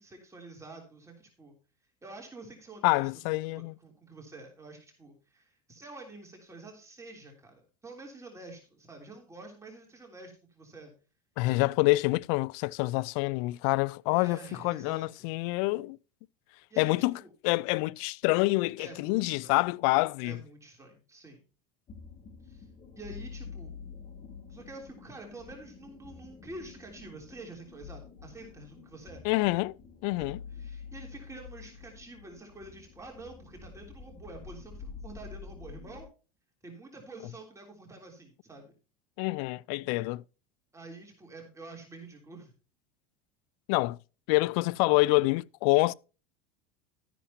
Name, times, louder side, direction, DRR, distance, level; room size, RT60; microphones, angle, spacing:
voice 1, 0.0-1.5 2.0-3.1 3.5-10.9 14.1-15.3 16.7-17.3 18.8-19.6 20.2-21.4 22.4-22.7 23.0-23.7 24.5-29.2 30.2-36.1 36.6-38.7 40.7-42.5, right 2 dB, 15° right, 3.3 m, -48 dB
voice 2, 2.8-3.7 11.4-16.0 16.8-20.4 29.2-29.8 30.0-30.4 39.2-40.2 43.7-44.0 44.3-45.9, left 22 dB, 65° left, 0.4 m, -27 dB
sound 1, 21.9-36.0, left 5 dB, 35° left, 2.7 m, -47 dB
12.5 x 10.0 x 2.9 m
supercardioid pair, 105°, 19 cm